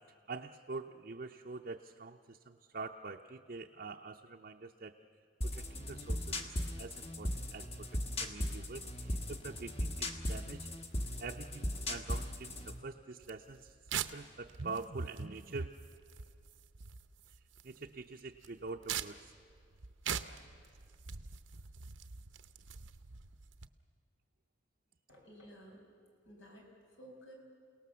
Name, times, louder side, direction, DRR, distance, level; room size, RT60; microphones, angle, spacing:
voice 1, 0.1-5.0 5.4-10.7 11.2-15.7 17.6-19.3, right 3 dB, 45° right, 1 dB, 0.6 m, -45 dB
sound 1, 5.4-12.8, left 1 dB, 30° left, 1.4 m, -38 dB
sound 2, 13.2-23.7, right 8 dB, 75° right, 0.8 m, -44 dB
voice 2, 25.1-25.8 26.2-27.3, equal, 85° left, 0 dB, 5.6 m, -54 dB
29.0 x 18.0 x 7.0 m, 2.2 s
head